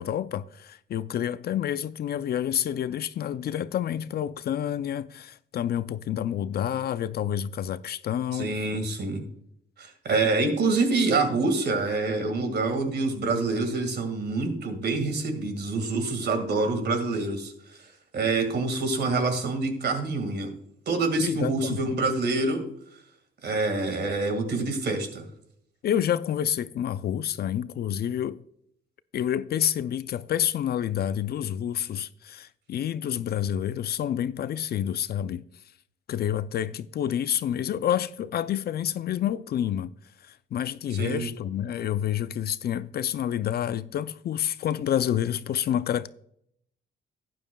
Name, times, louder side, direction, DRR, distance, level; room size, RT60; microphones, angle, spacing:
voice 1, 0.0-8.6 21.2-21.9 25.8-28.4 29.1-35.4 36.1-39.9 40.2-46.1, left 10 dB, 55° left, 0.4 m, -28 dB
voice 2, 8.3-9.2 9.8-17.5 18.1-20.5 20.9-22.6 23.4-25.2 40.9-41.3, right 3 dB, 55° right, 1.9 m, -26 dB
12.0 x 9.5 x 2.3 m
cardioid pair, 90°, 20 cm